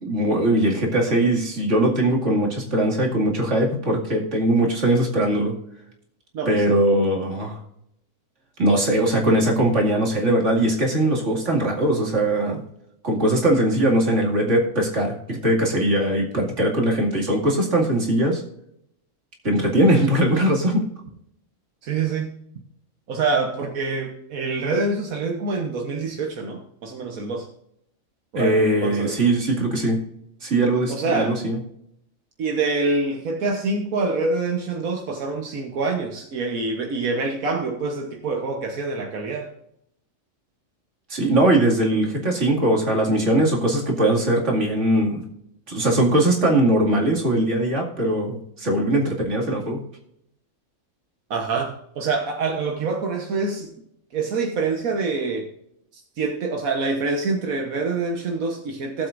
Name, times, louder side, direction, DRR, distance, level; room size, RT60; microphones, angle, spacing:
voice 1, 0.0-5.5 6.5-7.6 8.6-12.6 13.0-18.4 19.4-20.9 28.3-30.0 30.4-31.6 41.1-45.3 45.7-49.8, right 1 dB, 60° right, -1 dB, 2.7 m, -20 dB
voice 2, 6.3-6.7 20.0-20.1 21.8-22.3 23.1-27.5 28.3-29.2 30.9-31.3 32.4-39.5 51.3-53.7 54.1-55.5 56.2-59.1, right 3 dB, 85° right, 2 dB, 1.6 m, -26 dB
18.0 x 7.7 x 2.6 m, 0.75 s
omnidirectional pair, 1.4 m